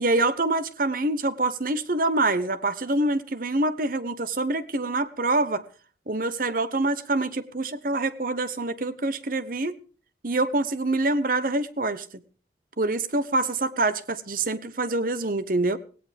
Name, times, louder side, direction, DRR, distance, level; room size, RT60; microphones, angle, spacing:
voice 1, 0.0-5.6 6.1-9.8 10.2-12.0 12.8-15.8, right 2 dB, 50° right, 13 dB, 1.1 m, -25 dB
17.5 x 17.5 x 3.5 m, 0.38 s
head